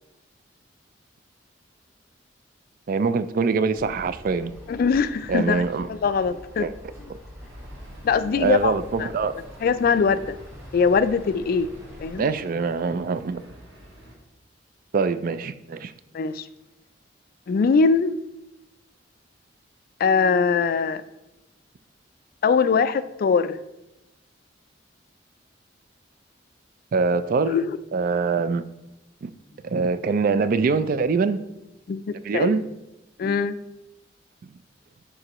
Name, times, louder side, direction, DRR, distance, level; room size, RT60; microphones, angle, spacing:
voice 1, 2.9-4.5 5.3-5.9 6.6-6.7 8.4-9.4 12.2-13.4 14.9-15.9 26.9-27.6 27.9-28.7 29.2-29.3 29.6-31.4 32.2-32.6, right 4 dB, 50° right, 13 dB, 0.3 m, -23 dB
sound 1, 3.8-12.2, equal, 15° right, 1.3 m, -44 dB
voice 2, 4.7-6.7 8.0-8.7 9.0-9.1 9.6-10.4 10.7-11.7 12.0-12.2 16.1-16.5 17.5-18.2 20.0-21.0 22.4-23.6 27.5-27.8 31.9-32.6 33.2-33.6, left 5 dB, 50° left, 14 dB, 0.3 m, -22 dB
sound 2, 7.4-14.2, equal, 90° right, 1.6 m, -49 dB
11.0 x 3.7 x 3.0 m, 0.94 s
head